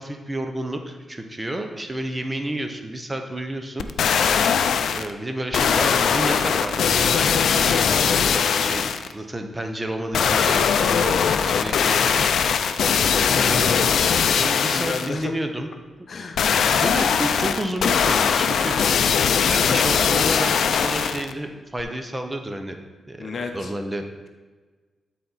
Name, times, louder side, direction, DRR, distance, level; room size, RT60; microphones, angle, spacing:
voice 1, 0.0-3.9 4.9-7.3 7.5-8.9 9.1-12.6 13.3-13.9 14.4-15.7 16.0-16.1 16.7-19.0 19.5-22.8 23.1-24.0, right 1 dB, 15° right, 5 dB, 0.8 m, -30 dB
sound 1, 3.8-5.1 5.5-9.1 10.1-15.1 16.4-21.3 21.8-21.9, left 7 dB, 80° left, 0.4 m, -20 dB
voice 2, 14.7-15.3 16.1-16.6 23.2-23.7, left 4 dB, 55° left, 6 dB, 0.8 m, -32 dB
12.5 x 4.2 x 4.1 m, 1.3 s
cardioid pair, 95°, 0 cm